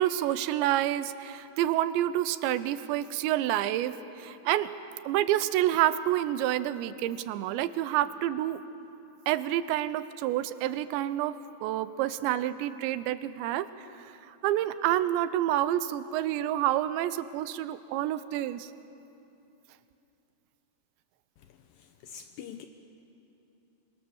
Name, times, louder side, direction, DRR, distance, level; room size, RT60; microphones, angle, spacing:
voice 1, 0.0-4.7 5.1-8.6 9.3-13.7 14.4-18.7, right 13 dB, 85° right, 14 dB, 3.0 m, -28 dB
voice 2, 21.4-22.7, left 8 dB, 85° left, 7 dB, 2.0 m, -46 dB
27.5 x 24.0 x 7.1 m, 2.8 s
omnidirectional pair, 5.1 m